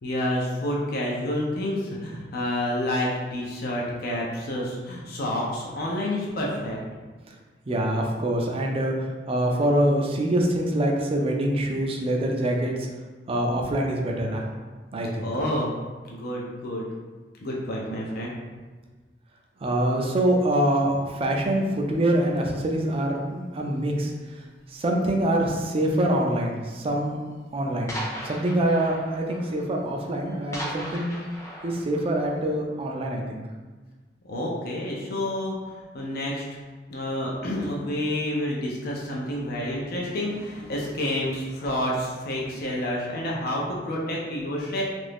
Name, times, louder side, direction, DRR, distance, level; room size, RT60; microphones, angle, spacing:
voice 1, 0.0-6.8 15.2-15.7 16.0-16.9 17.4-18.3 34.2-35.6 35.9-36.5 36.9-44.8, left 1 dB, 55° left, -3 dB, 0.5 m, -29 dB
voice 2, 7.7-12.9 13.3-14.5 14.9-15.3 19.6-24.1 24.7-27.2 27.5-27.9 28.2-31.1 31.6-33.4, right 1 dB, 30° right, 0 dB, 0.4 m, -25 dB
sound 1, 20.3-20.5 21.2-21.6 21.9-22.3 22.7-23.0 23.4-23.5 23.8-23.9 24.7-25.1 26.0-26.1 26.4-26.5 26.9-27.0 27.3-27.4 27.9-32.6, equal, 15° left, 0.6 m, -38 dB
2.7 x 2.5 x 3.4 m, 1.3 s
head